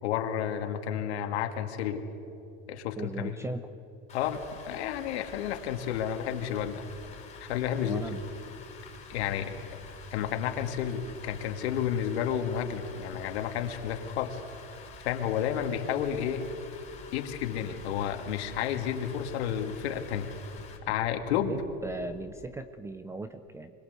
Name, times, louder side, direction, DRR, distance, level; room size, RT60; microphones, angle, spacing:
voice 1, 0.0-2.0 2.7-3.3 4.1-6.8 7.4-8.0 9.1-9.6 10.1-14.4 15.0-16.5 17.1-20.3 20.9-21.5, left 9 dB, 80° left, 5 dB, 2.3 m, -31 dB
voice 2, 3.0-3.7 7.8-8.2 21.4-23.7, right 2 dB, 10° right, 10 dB, 0.5 m, -38 dB
Rain, 4.1-20.8, left 6 dB, 20° left, 4.6 m, -50 dB
sound 1, 4.2-22.5, right 1 dB, 25° right, 2.5 m, -52 dB
25.5 x 21.0 x 8.2 m, 2.9 s
supercardioid pair, 145°, 33 cm